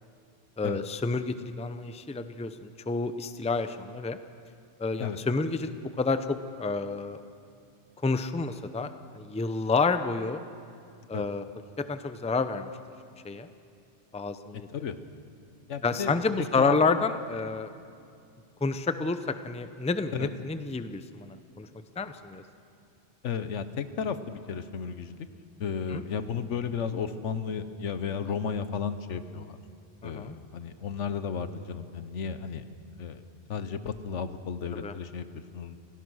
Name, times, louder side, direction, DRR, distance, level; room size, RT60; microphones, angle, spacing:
voice 1, 0.6-4.2 4.8-7.2 8.0-10.4 11.1-11.4 11.8-12.7 13.2-13.5 14.1-14.7 15.8-17.7 18.6-21.7 22.0-22.4 25.9-26.0 30.0-30.4 34.7-34.9, left 4 dB, 10° left, 10 dB, 0.5 m, -29 dB
voice 2, 14.5-14.9 15.7-16.8 20.2-20.3 23.2-25.3 25.6-29.6 30.0-32.7 33.0-33.2 33.5-35.7, left 6 dB, 85° left, 11 dB, 1.3 m, -34 dB
27.0 x 17.0 x 6.3 m, 2.4 s
omnidirectional pair, 1.2 m